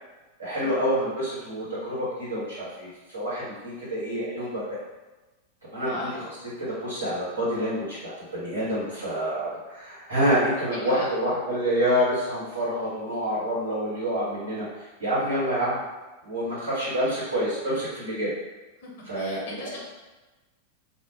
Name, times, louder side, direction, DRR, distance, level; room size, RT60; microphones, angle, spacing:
voice 1, 0.4-4.8 5.7-6.3 6.8-14.7 15.0-15.8 16.2-18.3 19.1-19.7, equal, 80° right, -9 dB, 1.3 m, -27 dB
voice 2, 10.7-11.1 17.1-17.2 18.8-19.8, left 2 dB, 55° left, -1 dB, 0.6 m, -39 dB
2.5 x 2.0 x 2.6 m, 1.1 s
figure-of-eight pair, 90°, 0 cm